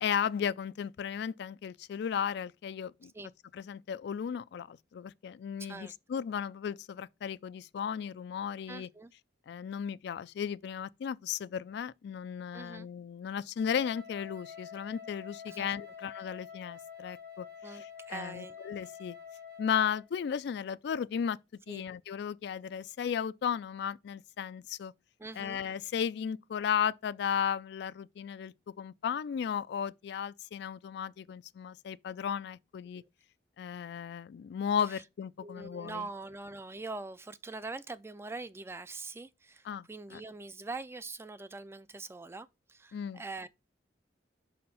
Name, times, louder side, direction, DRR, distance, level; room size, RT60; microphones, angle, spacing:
voice 1, 0.0-3.1 3.5-8.9 9.5-17.5 17.7-19.2 19.6-21.4 21.7-24.9 25.4-33.0 33.6-36.1 39.7-40.2 42.9-43.2, left 8 dB, 65° left, 0.3 m, -35 dB
voice 2, 5.6-5.9 8.7-9.1 12.5-12.9 15.5-15.7 17.6-18.6 21.7-21.9 25.2-25.6 34.9-35.0 35.4-43.5, right 3 dB, 15° right, 0.3 m, -43 dB
Wind instrument woodwind instrument, 13.7-20.1, left 7 dB, 60° right, 1.6 m, -47 dB
5.6 x 4.2 x 5.4 m
head